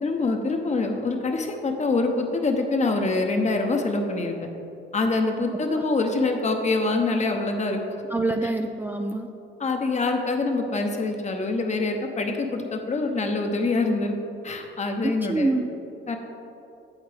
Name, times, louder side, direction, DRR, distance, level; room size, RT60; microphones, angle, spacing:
voice 1, 0.0-4.4 4.9-7.8 9.6-14.1 14.4-15.6 16.1-16.2, left 3 dB, 35° left, 4 dB, 0.9 m, -25 dB
voice 2, 8.1-9.3 15.0-15.7, right 2 dB, 10° right, 4 dB, 0.3 m, -25 dB
8.2 x 7.8 x 3.5 m, 2.8 s
cardioid pair, 90°, 20 cm